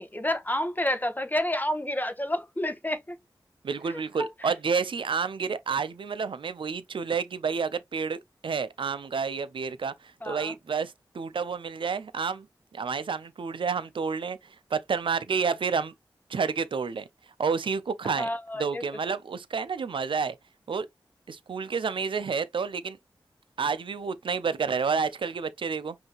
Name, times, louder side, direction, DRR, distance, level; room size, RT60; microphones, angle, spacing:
voice 1, 0.0-3.2 3.9-4.5 10.2-10.5 18.2-18.8, left 1 dB, 20° left, 0.9 m, -30 dB
voice 2, 3.6-9.9 10.2-12.5 12.7-14.4 14.7-15.9 16.3-17.1 17.4-18.3 18.6-20.3 20.7-20.9 21.3-23.0 23.6-26.0, right 5 dB, 80° right, 0.5 m, -29 dB
5.5 x 2.7 x 2.9 m
cardioid pair, 45°, 9 cm